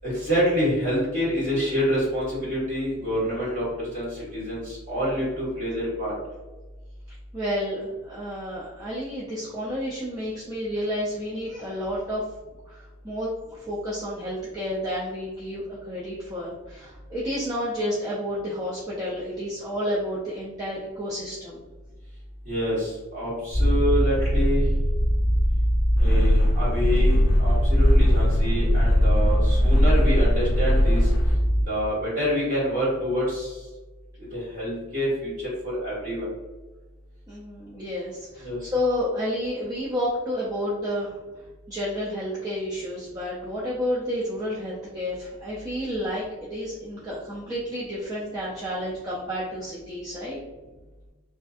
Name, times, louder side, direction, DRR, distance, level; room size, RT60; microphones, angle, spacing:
voice 1, 0.0-6.1 22.4-24.7 26.0-31.1 31.7-33.6 34.3-36.3 38.4-38.7, equal, 35° right, -8 dB, 1.3 m, -27 dB
voice 2, 7.3-12.2 12.6-21.6 37.3-41.2 41.7-50.4, equal, 15° right, -7 dB, 0.3 m, -30 dB
sound 1, 23.5-31.6, equal, 60° right, 0.9 m, -23 dB
sound 2, 26.0-31.3, equal, 55° left, 0.5 m, -20 dB
2.5 x 2.4 x 2.4 m, 1.2 s
head